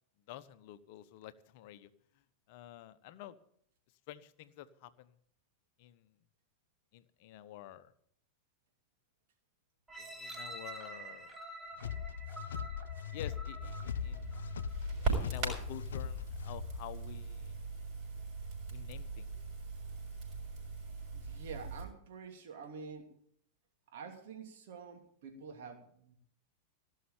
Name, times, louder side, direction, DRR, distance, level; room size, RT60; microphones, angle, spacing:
voice 1, 0.3-3.4 4.1-5.1 5.8-6.1 6.9-7.9 10.0-11.4 13.1-14.4 15.0-17.6 18.7-19.3, left 12 dB, 50° left, 14 dB, 0.9 m, -50 dB
sound 1, 9.9-14.8 15.4-15.5, right 2 dB, 10° right, 2.0 m, -48 dB
sound 2, 11.8-16.9, left 9 dB, 65° left, 0.5 m, -40 dB
Crackle, 13.6-21.8, right 4 dB, 40° right, 6.4 m, -40 dB
voice 2, 21.1-23.1 23.9-26.2, right 5 dB, 55° right, 4 dB, 2.9 m, -48 dB
17.0 x 6.6 x 8.7 m, 0.66 s
figure-of-eight pair, 90°, 0 cm